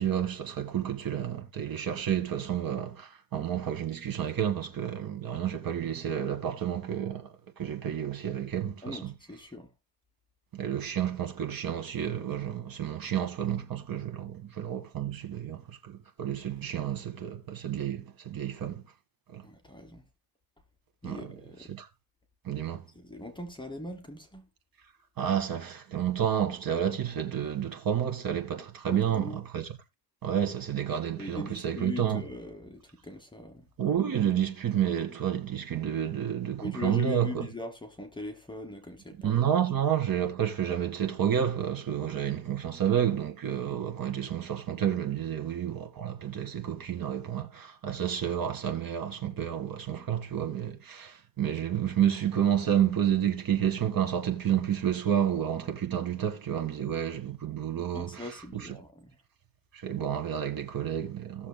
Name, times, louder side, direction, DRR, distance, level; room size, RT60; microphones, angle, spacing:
voice 1, 0.0-7.3 7.6-9.1 10.5-18.8 19.3-19.4 21.0-21.4 21.7-21.9 22.5-22.8 25.2-29.8 30.2-32.2 33.8-37.4 39.2-58.8 59.7-61.5, right 9 dB, 50° right, 1.8 m, -30 dB
voice 2, 8.8-9.7 19.4-20.0 21.0-21.7 22.9-24.4 28.9-29.4 31.2-33.7 36.6-39.4 57.9-59.1, left 2 dB, 10° left, 1.2 m, -40 dB
17.5 x 6.8 x 2.2 m
cardioid pair, 140°, 43 cm